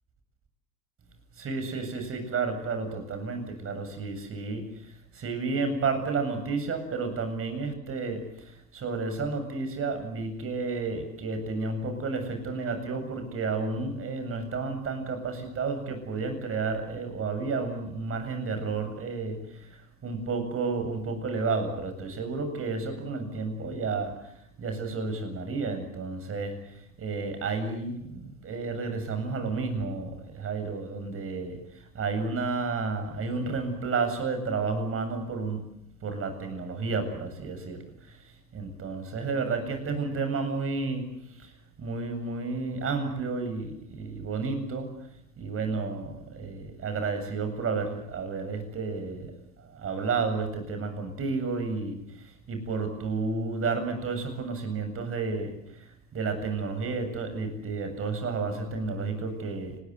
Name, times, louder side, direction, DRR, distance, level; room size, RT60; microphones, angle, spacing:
voice 1, 1.4-19.8 20.0-24.3 24.6-35.6 36.0-38.2 38.5-41.5 41.8-44.9 45.4-49.3 49.6-59.8, right 4 dB, 30° right, 8 dB, 7.9 m, -31 dB
30.0 x 21.0 x 8.3 m, 0.76 s
figure-of-eight pair, 80°, 44 cm